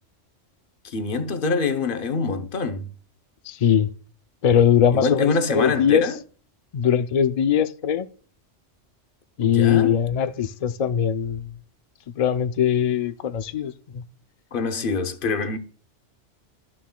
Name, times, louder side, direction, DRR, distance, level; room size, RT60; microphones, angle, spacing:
voice 1, 0.8-2.9 4.9-6.2 9.4-10.0 14.5-15.6, left 4 dB, 50° left, 0.9 m, -25 dB
voice 2, 3.5-3.9 4.4-6.1 6.7-8.1 9.4-11.5 12.2-14.0, left 8 dB, 85° left, 0.3 m, -21 dB
13.0 x 6.1 x 2.2 m
omnidirectional pair, 1.3 m